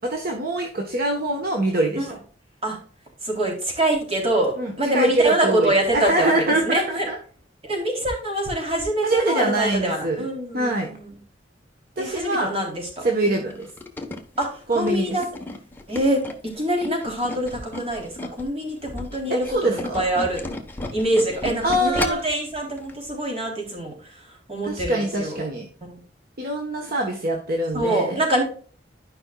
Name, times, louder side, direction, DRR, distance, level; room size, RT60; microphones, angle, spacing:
voice 1, 0.0-2.1 4.6-7.2 9.0-10.2 10.5-10.9 12.0-12.5 13.0-13.7 14.7-15.2 19.3-20.0 21.6-22.2 24.6-25.7 26.4-28.2, right 2 dB, 55° right, 2 dB, 1.3 m, -24 dB
voice 2, 3.2-7.1 7.6-11.1 12.0-13.4 14.4-15.3 15.9-16.2 16.5-20.4 20.9-25.4 25.9-26.0 27.7-28.4, right 1 dB, 35° right, 0 dB, 3.5 m, -25 dB
Tools, 13.5-18.5 18.8-22.4 22.8-23.0 23.3-23.4, left 1 dB, 10° left, 1.2 m, -33 dB
12.5 x 5.5 x 2.4 m, 0.43 s
head